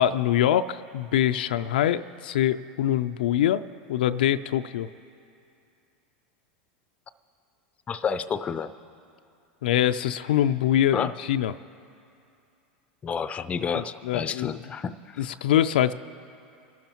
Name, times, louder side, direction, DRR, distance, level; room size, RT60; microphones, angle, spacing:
voice 1, 0.0-3.6 3.9-4.9 9.6-11.5 13.7-14.6 15.2-15.9, left 11 dB, 80° left, 10 dB, 0.4 m, -24 dB
voice 2, 7.9-8.7 10.9-11.1 13.0-15.3, left 6 dB, 25° left, 13 dB, 0.5 m, -30 dB
25.5 x 12.0 x 3.0 m, 2.6 s
hypercardioid pair, 105°, 5 cm